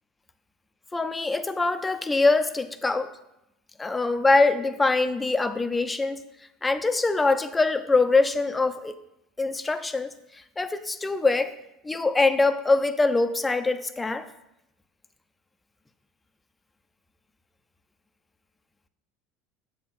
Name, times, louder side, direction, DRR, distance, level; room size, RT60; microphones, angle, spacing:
voice 1, 0.9-3.1 3.8-6.2 6.6-8.9 9.4-10.1 10.6-11.5 11.8-14.3, left 3 dB, 15° left, 10 dB, 0.6 m, -23 dB
7.4 x 4.2 x 5.7 m, 0.86 s
hypercardioid pair, 80°, 0 cm